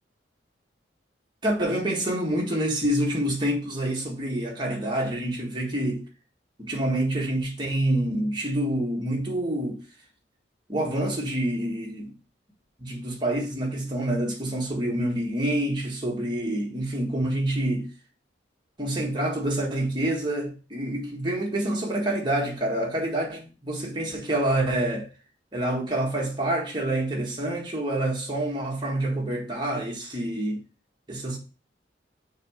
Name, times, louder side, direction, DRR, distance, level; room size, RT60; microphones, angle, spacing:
voice 1, 1.4-6.1 6.6-9.8 10.7-12.1 12.8-17.9 18.8-25.1 25.5-30.6 31.1-31.4, right 1 dB, 25° right, 1.7 m, -27 dB
6.6 x 3.4 x 4.9 m
head